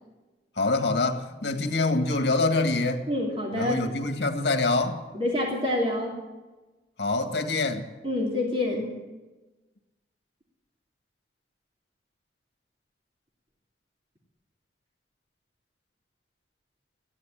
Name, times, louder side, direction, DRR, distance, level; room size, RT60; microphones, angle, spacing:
voice 1, 0.6-3.1 3.5-5.0 7.0-7.9, left 3 dB, 75° left, 1.9 m, -25 dB
voice 2, 3.1-3.8 5.1-6.2 8.0-8.9, left 1 dB, 30° right, 3.0 m, -27 dB
15.0 x 11.0 x 8.9 m
head